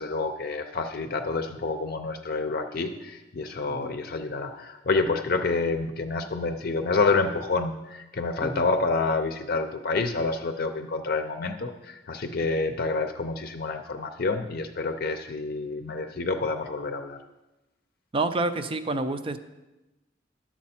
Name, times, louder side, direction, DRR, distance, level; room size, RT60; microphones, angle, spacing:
voice 1, 0.0-17.2, left 3 dB, 55° left, 6 dB, 0.6 m, -28 dB
voice 2, 18.1-19.4, right 2 dB, 30° right, 9 dB, 0.5 m, -28 dB
11.0 x 7.2 x 4.3 m, 1.0 s
head